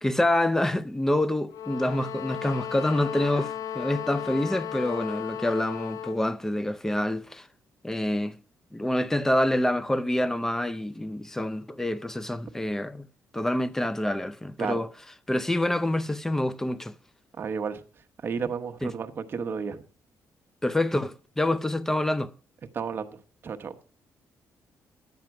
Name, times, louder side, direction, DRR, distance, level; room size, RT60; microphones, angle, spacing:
voice 1, 0.0-7.5 7.8-8.4 8.7-13.1 13.3-14.9 15.3-16.9 18.8-18.9 20.6-22.3, left 1 dB, 5° left, 0.5 m, -27 dB
sound 1, 1.5-6.2, left 10 dB, 70° left, 0.8 m, -35 dB
voice 2, 17.4-17.8 18.2-19.8 22.7-23.8, right 6 dB, 40° right, 1.0 m, -32 dB
10.5 x 7.5 x 5.8 m
cardioid pair, 145°, 6 cm